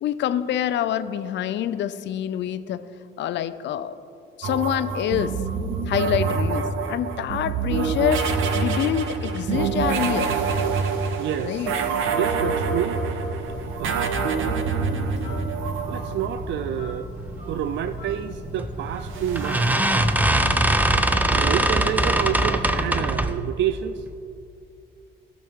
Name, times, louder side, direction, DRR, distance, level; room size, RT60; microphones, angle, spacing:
voice 1, 0.0-2.8 3.2-4.0 4.4-5.4 5.9-8.3 8.5-10.3 11.4-11.7, left 10 dB, 65° left, 12 dB, 0.5 m, -26 dB
sound 1, 4.4-17.0 19.0-20.7, right 5 dB, 85° right, 0.8 m, -26 dB
voice 2, 11.2-11.7 12.1-13.0 13.6-14.2 15.9-17.1 17.5-19.7 21.3-24.0, right 10 dB, 65° right, 10 dB, 0.5 m, -28 dB
Telephone, 13.4-23.1, right 1 dB, 35° right, 2.6 m, -37 dB
sound 2, 18.6-18.9 19.4-23.4, right 1 dB, 10° right, 0.6 m, -21 dB
17.5 x 6.2 x 3.6 m, 2.6 s
cardioid pair, 90°, 20 cm